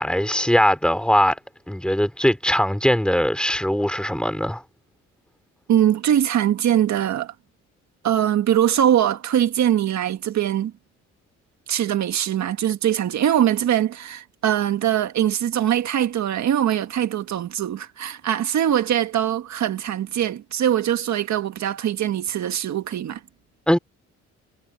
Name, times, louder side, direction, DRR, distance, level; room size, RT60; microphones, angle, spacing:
voice 1, 0.0-1.4 1.7-4.6 23.7-23.8, equal, 5° left, 3.1 m, -20 dB
voice 2, 5.7-7.3 8.0-10.7 11.7-23.2, right 10 dB, 65° right, 1.6 m, -22 dB
cardioid pair, 90°, 30 cm